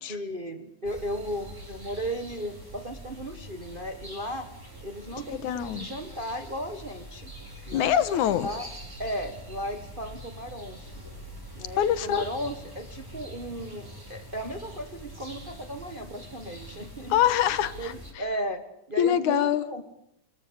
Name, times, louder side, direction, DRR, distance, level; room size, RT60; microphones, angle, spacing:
voice 1, 0.1-4.5 4.8-7.3 7.7-7.9 8.4-8.7 9.0-11.0 11.5-17.2 17.8-18.6 18.9-19.8, equal, 30° right, 8 dB, 1.0 m, -35 dB
sound 1, 0.8-18.1, equal, 5° right, 5.6 m, -44 dB
voice 2, 5.4-5.9 7.7-8.5 11.8-12.2 17.1-17.9 19.0-19.6, left 10 dB, 90° left, 14 dB, 2.7 m, -24 dB
26.0 x 20.5 x 8.4 m, 0.78 s
omnidirectional pair, 3.4 m